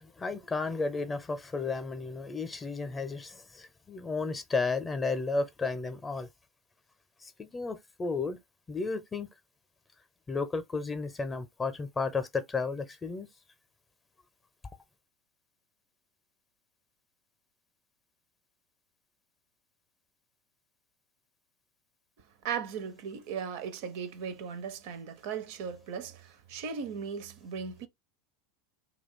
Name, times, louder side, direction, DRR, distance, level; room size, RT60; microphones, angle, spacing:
voice 1, 0.0-6.3 7.2-8.4 8.7-9.3 10.3-13.3, left 4 dB, 20° left, 0.6 m, -33 dB
voice 2, 22.4-26.2 26.5-27.9, right 6 dB, 60° right, 0.4 m, -37 dB
2.4 x 2.2 x 3.5 m
figure-of-eight pair, 80°, 0 cm